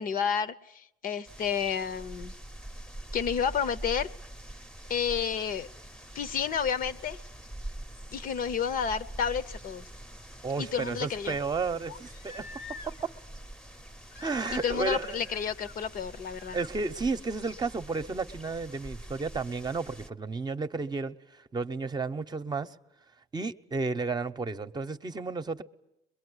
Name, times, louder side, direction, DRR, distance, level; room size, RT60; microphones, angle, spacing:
voice 1, 0.0-2.3 3.1-4.1 4.9-5.7 6.1-7.2 8.1-9.8 10.6-11.4 14.6-16.6, left 7 dB, 55° left, 0.9 m, -30 dB
sound 1, 1.2-20.1, right 1 dB, 5° left, 0.9 m, -45 dB
Crying sobbing, 9.1-9.2 11.9-13.2 14.1-15.0 15.2-15.7 16.4-16.7 18.3-18.4, left 5 dB, 85° left, 1.4 m, -46 dB
voice 2, 10.4-12.5 12.9-13.1 14.2-15.2 16.5-22.7 23.3-25.6, right 4 dB, 25° right, 0.9 m, -32 dB
23.0 x 22.5 x 9.8 m
cardioid pair, 110°, 17 cm